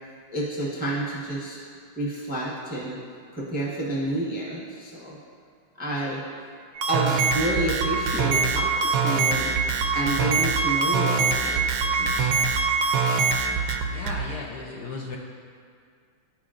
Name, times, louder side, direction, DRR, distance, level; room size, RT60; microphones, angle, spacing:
voice 1, 0.3-1.6 2.0-3.0 3.3-5.2 5.8-6.2 6.9-9.6 9.9-12.1, right 1 dB, 5° right, -5 dB, 0.7 m, -30 dB
sound 1, 6.8-14.2, right 4 dB, 75° right, 1.3 m, -23 dB
voice 2, 13.9-15.2, left 3 dB, 65° left, -2 dB, 1.1 m, -35 dB
12.5 x 4.7 x 2.5 m, 2.1 s
omnidirectional pair, 2.2 m